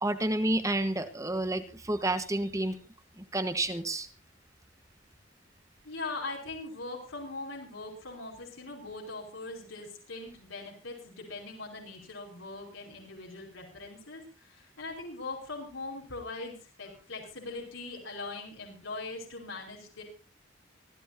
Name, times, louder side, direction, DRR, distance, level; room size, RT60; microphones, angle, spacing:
voice 1, 0.0-2.8 3.2-4.1, right 1 dB, 15° right, 9 dB, 1.4 m, -30 dB
voice 2, 5.8-20.0, left 3 dB, 85° left, -1 dB, 5.3 m, -41 dB
25.0 x 15.0 x 2.8 m, 0.35 s
head